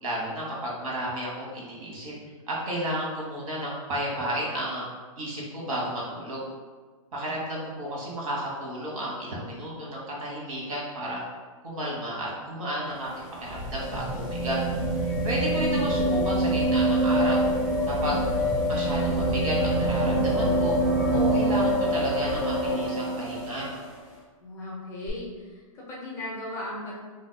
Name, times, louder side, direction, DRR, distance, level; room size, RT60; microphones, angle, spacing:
voice 1, 0.0-2.1 2.5-4.8 5.2-6.5 7.1-11.2 11.6-13.1 13.4-14.6 15.2-17.5 18.0-18.3 18.7-20.8 21.1-23.7, equal, 75° right, -4 dB, 1.3 m, -32 dB
sound 1, 12.9-23.9 25.1-25.2, right 1 dB, 10° right, 0.9 m, -25 dB
voice 2, 24.4-27.0, left 1 dB, 15° left, -5 dB, 0.5 m, -37 dB
3.9 x 2.6 x 2.2 m, 1.4 s
hypercardioid pair, 155°, 18 cm